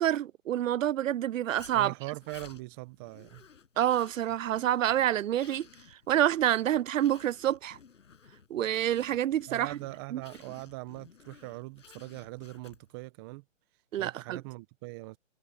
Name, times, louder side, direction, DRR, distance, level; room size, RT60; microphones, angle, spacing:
voice 1, 0.0-1.9 3.8-5.7 6.1-7.8 8.5-9.8 10.1-10.2 13.9-14.4, right 11 dB, 80° right, 0.5 m, -27 dB
Zipper (clothing), 1.6-13.0, left 6 dB, 70° left, 6.8 m, -55 dB
voice 2, 1.7-3.4 9.5-13.4 14.0-15.2, right 23 dB, 20° right, 0.8 m, -41 dB
hypercardioid pair, 145°, 39 cm